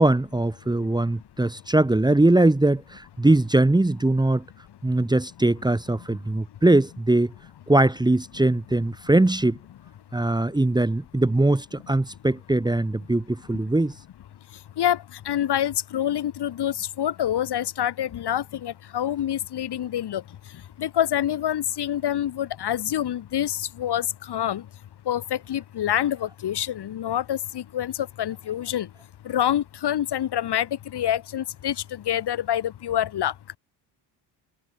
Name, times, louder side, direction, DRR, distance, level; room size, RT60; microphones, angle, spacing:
voice 1, 0.0-4.4 4.8-7.3 7.7-9.6 10.1-13.9, right 2 dB, 10° right, 1.6 m, -21 dB
voice 2, 14.8-24.7 25.1-28.9 29.2-33.3, left 11 dB, 55° left, 3.5 m, -27 dB
cardioid pair, 95°, 46 cm